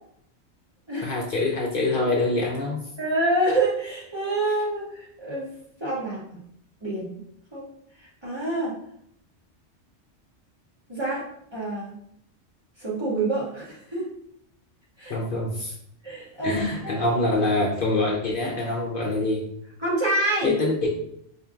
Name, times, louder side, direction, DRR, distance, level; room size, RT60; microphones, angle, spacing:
voice 1, 1.0-2.8 15.1-15.7 16.4-19.4 20.4-20.9, left 2 dB, 60° left, -1 dB, 0.7 m, -25 dB
voice 2, 3.0-5.5 5.8-6.2 6.8-7.2 7.5-7.7 8.2-8.7 10.9-11.3 11.5-11.9 12.8-14.1 15.0-15.2 16.0-17.0 19.8-20.5, right 2 dB, 25° right, -7 dB, 0.8 m, -27 dB
4.3 x 2.6 x 2.3 m, 0.71 s
omnidirectional pair, 1.2 m